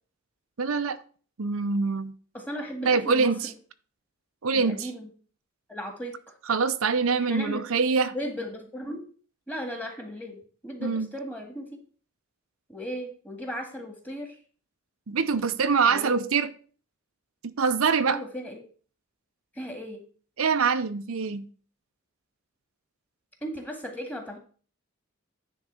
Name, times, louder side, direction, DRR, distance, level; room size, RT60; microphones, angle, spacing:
voice 1, 0.6-1.0 1.4-2.1 2.9-3.5 4.4-4.9 6.5-8.1 10.8-11.1 15.1-16.5 17.6-18.2 20.4-21.5, right 5 dB, 90° right, 10 dB, 0.6 m, -24 dB
voice 2, 2.3-3.5 4.5-5.1 5.7-6.4 7.3-7.8 8.1-9.0 9.5-11.8 12.7-14.4 15.9-16.3 18.1-18.6 19.5-20.0 23.4-24.4, equal, 10° left, 3 dB, 1.8 m, -36 dB
9.9 x 3.9 x 6.4 m, 0.42 s
head